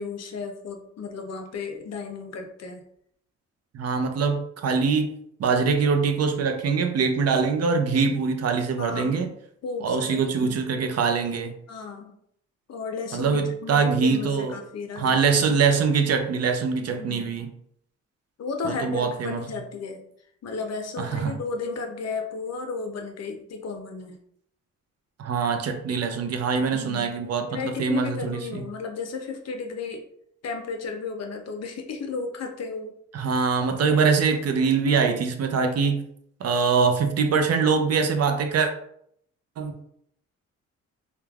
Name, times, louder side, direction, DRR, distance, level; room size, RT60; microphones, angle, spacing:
voice 1, 0.0-2.8 8.8-9.3 9.6-10.6 11.7-12.1 12.7-15.6 16.8-17.4 18.4-20.0 20.4-24.2 26.7-27.1 27.5-30.0 30.4-33.0, left 4 dB, 55° left, 4 dB, 0.6 m, -34 dB
voice 2, 3.7-5.1 5.4-9.3 9.8-11.5 13.1-14.6 15.0-17.5 18.6-19.4 21.0-21.4 25.2-28.6 33.1-36.0 36.4-38.7 39.6-39.7, right 5 dB, 50° right, 6 dB, 0.5 m, -23 dB
3.2 x 2.2 x 2.3 m, 0.71 s
cardioid pair, 65°, 32 cm